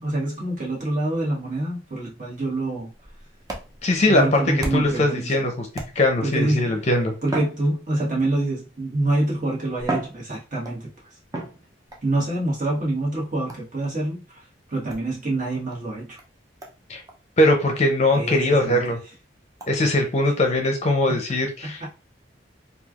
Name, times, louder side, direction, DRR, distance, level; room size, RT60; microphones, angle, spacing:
voice 1, 0.0-2.9 4.0-5.3 6.2-6.8 7.2-10.9 12.0-16.2 18.1-19.0 21.1-21.2 21.6-21.9, right 2 dB, 45° right, -4 dB, 1.3 m, -26 dB
sound 1, 2.9-5.1 5.7-6.3 7.2-8.3 9.2-9.3 9.8-10.8 11.3-12.1 13.5-13.8 14.9-15.1 15.7-15.8 16.2-16.3 16.6-16.8 17.1-17.2 17.6-17.7 18.1-18.2 18.6-18.7 19.6-19.7, right 2 dB, 20° right, 0.5 m, -34 dB
voice 2, 3.8-4.4 4.7-5.7 6.0-7.1 16.9-17.0 17.4-19.0 19.7-21.8, left 1 dB, 35° left, 4 dB, 0.6 m, -20 dB
3.2 x 2.3 x 2.3 m, 0.31 s
head